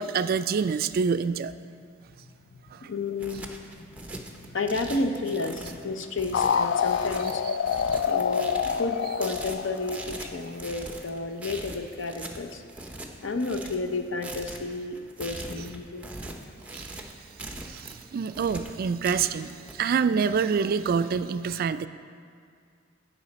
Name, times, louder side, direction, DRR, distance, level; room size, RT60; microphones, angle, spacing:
voice 1, 0.0-1.5 2.7-2.8 7.7-8.0 16.7-16.9 17.6-21.9, right 6 dB, 50° right, 12 dB, 0.3 m, -27 dB
voice 2, 2.8-7.4 8.1-12.6 13.2-16.1, left 3 dB, 85° left, 7 dB, 0.7 m, -32 dB
sound 1, 3.0-19.7, right 2 dB, 5° right, 0.7 m, -41 dB
sound 2, 6.3-10.8, left 7 dB, 65° left, 0.3 m, -27 dB
16.5 x 5.6 x 4.1 m, 2.2 s
head